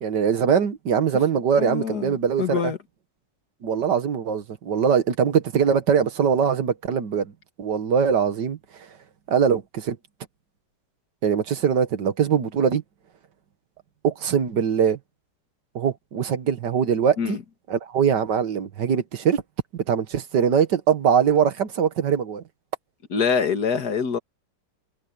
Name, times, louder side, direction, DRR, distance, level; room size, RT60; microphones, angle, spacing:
voice 1, 0.0-2.7 3.6-7.3 7.6-8.6 9.3-10.0 11.2-12.8 14.0-15.0 15.8-17.4 17.7-19.4 19.7-22.4, right 7 dB, 75° right, 2.0 m, -22 dB
voice 2, 1.6-2.8 17.2-17.4 23.1-24.2, left 6 dB, 60° left, 2.3 m, -25 dB
omnidirectional pair, 1.9 m